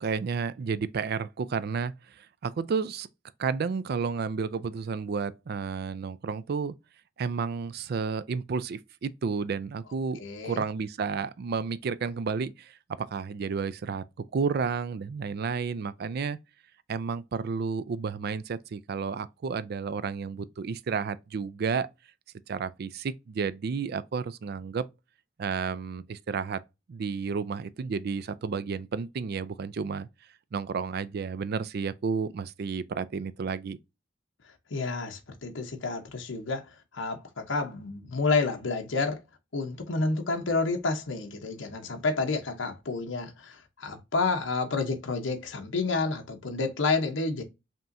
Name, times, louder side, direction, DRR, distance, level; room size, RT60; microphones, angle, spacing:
voice 1, 0.0-3.1 3.4-6.7 7.2-14.0 14.3-16.4 16.9-21.9 22.5-24.9 25.4-26.6 26.9-30.1 30.5-33.8, right 5 dB, 55° right, 0.4 m, -31 dB
voice 2, 10.2-10.6 34.7-36.7 36.9-39.2 39.5-47.4, left 3 dB, 75° left, 0.8 m, -29 dB
5.4 x 3.0 x 2.5 m
head